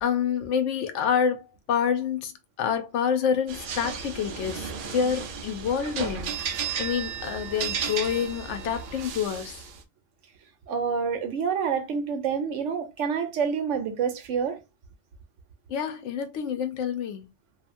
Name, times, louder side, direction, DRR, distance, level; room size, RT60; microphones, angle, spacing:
voice 1, 0.0-9.6 15.7-17.3, left 7 dB, 85° left, 0.9 m, -28 dB
sound 1, 3.5-9.8, right 6 dB, 60° right, 0.6 m, -34 dB
voice 2, 10.7-14.6, right 6 dB, 90° right, 1.0 m, -27 dB
2.8 x 2.4 x 2.6 m
omnidirectional pair, 1.2 m